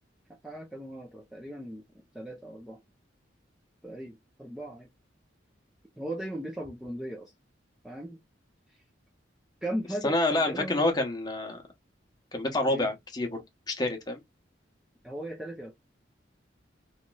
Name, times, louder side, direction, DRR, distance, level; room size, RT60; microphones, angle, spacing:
voice 1, 0.4-2.8 3.8-4.9 6.0-7.3 7.8-8.2 8.7-8.8 9.6-10.9 12.7-12.9 15.0-15.7, right 1 dB, 5° right, 0.5 m, -38 dB
voice 2, 10.0-11.6 12.3-14.2, left 2 dB, 20° left, 0.8 m, -28 dB
3.0 x 2.9 x 2.2 m
head